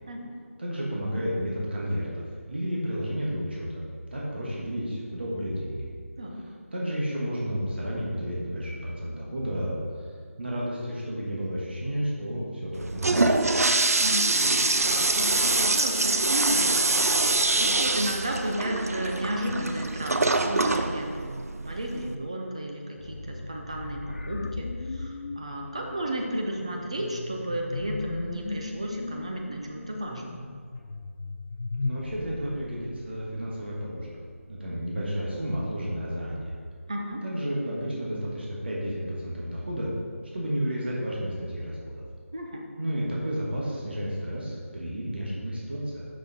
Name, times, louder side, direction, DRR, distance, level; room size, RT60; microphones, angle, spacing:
voice 1, 0.6-5.9 6.7-9.8 10.4-13.4 31.8-36.5 37.2-39.9 40.3-42.0 42.8-46.1, equal, 45° right, -5 dB, 1.5 m, -32 dB
Toilet flush, 12.7-22.1, right 3 dB, 85° right, 0.6 m, -24 dB
voice 2, 14.0-30.4 36.9-37.2 42.3-42.6, right 1 dB, 25° right, 1 dB, 0.6 m, -33 dB
sound 1, 23.0-34.6, left 1 dB, 25° left, 1.0 m, -46 dB
sound 2, 23.7-32.0, left 3 dB, 65° left, 0.3 m, -37 dB
6.5 x 5.7 x 4.0 m, 2.1 s
figure-of-eight pair, 180°, 8 cm